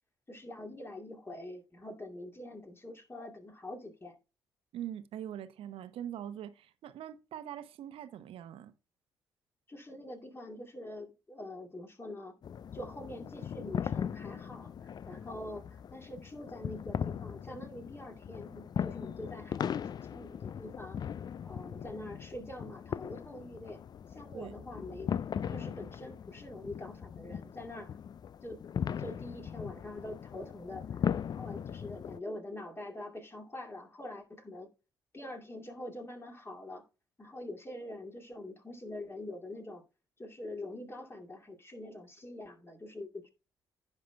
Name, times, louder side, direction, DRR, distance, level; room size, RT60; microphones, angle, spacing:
voice 1, 0.3-4.2 9.7-12.4 12.7-19.8 20.1-21.0 21.4-23.8 24.1-25.2 25.5-27.9 28.4-28.6 29.0-30.9 31.3-34.7 35.1-36.8 37.2-39.8 40.2-43.3, left 1 dB, 20° left, 2.4 m, -44 dB
voice 2, 4.7-8.7 24.3-24.6, right 10 dB, 60° right, 0.9 m, -43 dB
sound 1, 12.4-32.2, left 8 dB, 40° left, 0.4 m, -39 dB
15.5 x 5.7 x 2.3 m
figure-of-eight pair, 45°, 11 cm